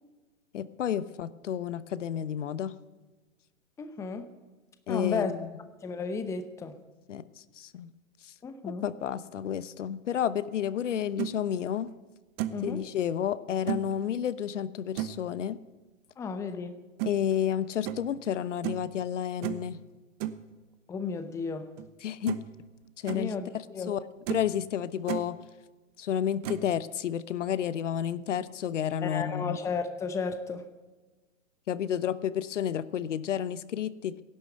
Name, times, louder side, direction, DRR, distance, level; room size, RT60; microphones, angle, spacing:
voice 1, 0.5-2.7 4.9-5.5 7.1-7.2 7.6-7.9 8.2-8.3 8.8-11.9 12.6-15.6 17.0-19.8 22.0-22.4 23.0-23.3 23.9-24.0 24.3-25.4 26.0-29.6 31.7-34.1, left 9 dB, 65° left, 16 dB, 1.0 m, -31 dB
voice 2, 3.8-4.3 4.9-5.3 5.8-6.7 8.4-8.9 12.5-12.8 16.2-16.7 20.9-21.7 23.1-23.9 29.0-30.6, left 5 dB, 5° left, 10 dB, 0.7 m, -33 dB
sound 1, 10.9-11.3 11.9-12.0 12.4-12.7 13.7-13.9 15.0-15.2 17.0-17.1 17.8-18.1 18.6-18.9 19.4-19.7 20.2-20.4 21.8-21.9 22.2-22.5 22.9-23.2 23.8-23.9 24.3-24.5 24.8-25.3 26.4-26.7, right 13 dB, 30° right, 0.9 m, -33 dB
16.0 x 11.5 x 7.8 m, 1.2 s
hypercardioid pair, 125°, 40 cm